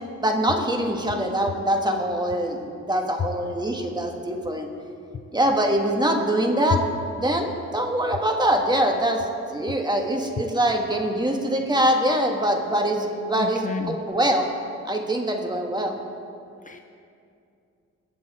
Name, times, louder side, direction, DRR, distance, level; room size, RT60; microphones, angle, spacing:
voice 1, 0.2-4.7 5.3-6.8 7.1-9.2 9.5-14.5 14.8-16.0, right 1 dB, 15° right, 3 dB, 1.5 m, -23 dB
voice 2, 13.4-13.9 16.7-16.8, left 5 dB, 25° left, 6 dB, 0.5 m, -31 dB
21.0 x 7.7 x 4.2 m, 2.5 s
cardioid pair, 90°, 30 cm